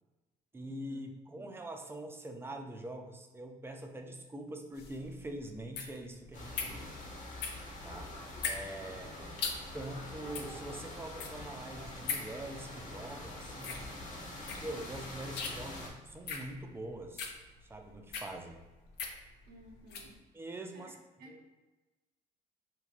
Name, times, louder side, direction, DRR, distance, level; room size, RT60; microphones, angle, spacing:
voice 1, 0.5-7.0 7.8-8.1 8.4-9.1 9.7-13.8 14.6-17.3 17.6-18.6 20.3-20.9 21.3-21.4, right 1 dB, 15° right, 4 dB, 0.4 m, -44 dB
sound 1, 4.7-20.1, left 5 dB, 80° left, 0.6 m, -42 dB
sound 2, 6.3-15.9, left 1 dB, 50° left, 1.0 m, -45 dB
voice 2, 19.5-20.2 20.7-20.9 21.2-21.4, right 2 dB, 70° right, 1 dB, 0.6 m, -54 dB
3.7 x 3.1 x 2.4 m, 1.2 s
cardioid pair, 110°, 17 cm